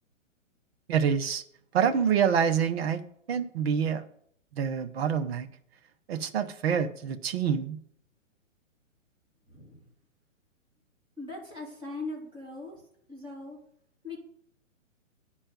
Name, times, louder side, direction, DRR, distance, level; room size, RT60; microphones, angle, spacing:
voice 1, 0.9-1.4 1.7-3.0 3.3-4.0 4.5-5.5 6.1-7.8, right 7 dB, 50° right, 9 dB, 1.0 m, -26 dB
voice 2, 9.5-9.9 11.2-12.8 13.1-13.6 14.0-14.2, left 3 dB, 10° right, -4 dB, 3.3 m, -40 dB
10.0 x 4.4 x 7.3 m, 0.67 s
hypercardioid pair, 140°, 39 cm